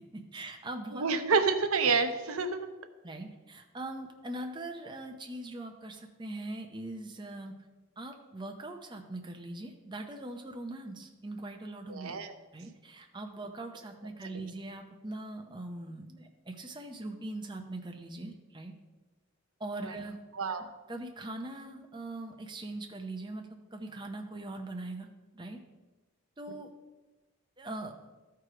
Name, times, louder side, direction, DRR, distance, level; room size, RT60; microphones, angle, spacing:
voice 1, 0.1-1.0 3.0-7.5 8.0-12.1 12.5-18.7 19.6-20.2 20.5-25.1 25.3-25.6 26.4-26.7 27.6-27.9, right 2 dB, 20° right, 3 dB, 0.7 m, -41 dB
voice 2, 0.9-2.7 11.9-12.3 19.8-19.9 20.3-20.7, right 4 dB, 80° right, 8 dB, 0.8 m, -28 dB
13.0 x 4.7 x 5.0 m, 1.2 s
head